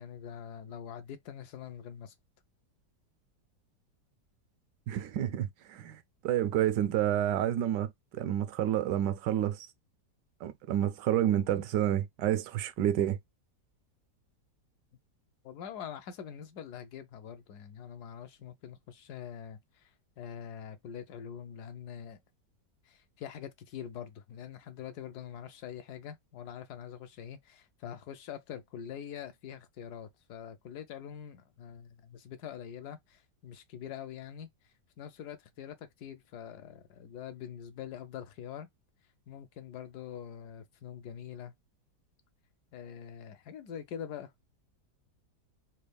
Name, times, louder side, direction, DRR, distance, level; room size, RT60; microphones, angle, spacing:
voice 1, 0.0-2.1 15.4-19.9 20.2-22.2 22.9-34.5 35.0-38.7 39.3-41.5 42.7-44.3, left 8 dB, 70° left, 1.2 m, -44 dB
voice 2, 4.9-9.7 10.4-13.2, right 11 dB, 85° right, 1.3 m, -29 dB
4.3 x 2.3 x 3.2 m
omnidirectional pair, 1.8 m